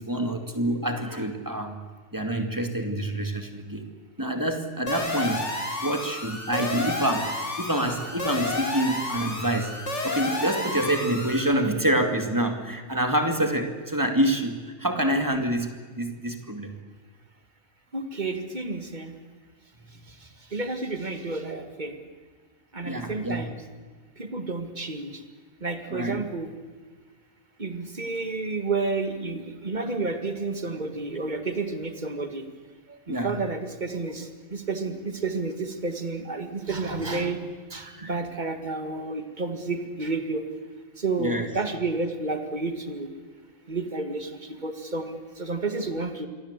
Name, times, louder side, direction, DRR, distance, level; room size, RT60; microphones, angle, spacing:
voice 1, 0.0-1.8 2.1-3.8 4.2-5.5 5.8-15.7 16.0-16.7 22.8-23.5 25.9-26.2 33.1-33.4 41.2-41.5, right 1 dB, 15° right, 5 dB, 2.2 m, -27 dB
sound 1, 4.9-11.5, left 2 dB, 55° left, 3.6 m, -31 dB
voice 2, 7.9-8.3 17.9-19.2 20.1-22.0 22.7-23.6 24.2-25.2 25.6-26.5 27.6-32.5 32.9-40.5 41.0-43.1 43.7-46.3, right 3 dB, 35° right, 8 dB, 2.1 m, -31 dB
28.0 x 23.0 x 8.2 m, 1.5 s
omnidirectional pair, 1.4 m